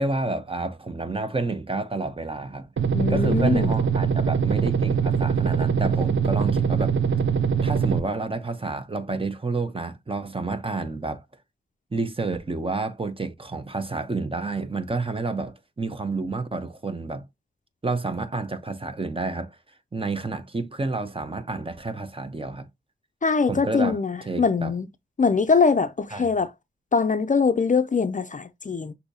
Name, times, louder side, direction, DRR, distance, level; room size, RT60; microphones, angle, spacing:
voice 1, 0.0-2.7 3.1-6.9 7.6-11.2 11.9-17.2 17.8-19.6 19.9-22.7 23.5-24.0 24.2-24.7 26.1-26.3, right 3 dB, 25° right, 0.8 m, -29 dB
sound 1, 2.8-8.0, right 6 dB, 65° right, 0.6 m, -23 dB
voice 2, 2.9-3.7 23.2-24.9 25.2-26.5 26.9-28.9, left 5 dB, 40° left, 0.4 m, -22 dB
6.3 x 2.7 x 2.7 m
wide cardioid pair, 65°, 21 cm